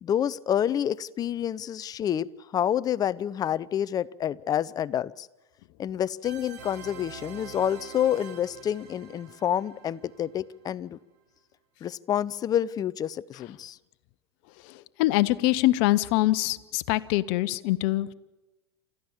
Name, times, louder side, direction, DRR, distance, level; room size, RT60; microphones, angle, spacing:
voice 1, 0.0-5.3 5.8-11.0 11.8-13.8, left 10 dB, 25° left, 19 dB, 0.6 m, -28 dB
sound 1, 6.2-10.8, right 7 dB, 45° right, 3.8 m, -46 dB
voice 2, 15.0-18.1, left 17 dB, 50° left, 14 dB, 1.0 m, -24 dB
29.0 x 13.5 x 7.3 m, 1.1 s
hypercardioid pair, 100°, 14 cm